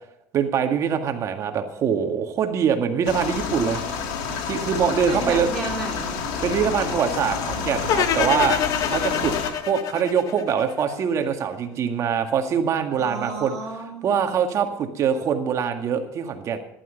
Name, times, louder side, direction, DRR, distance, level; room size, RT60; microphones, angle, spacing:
voice 1, 0.3-3.8 4.3-5.5 6.4-9.3 9.7-13.6 14.0-16.6, right 7 dB, 45° right, 6 dB, 1.9 m, -23 dB
sound 1, 3.1-9.5, left 6 dB, 75° left, 2.5 m, -29 dB
voice 2, 5.1-6.2 13.0-14.4, right 2 dB, 5° left, -2 dB, 3.8 m, -33 dB
sound 2, 7.9-11.0, left 9 dB, 55° left, 1.3 m, -26 dB
14.5 x 11.5 x 5.3 m, 0.79 s
cardioid pair, 120°, 7 cm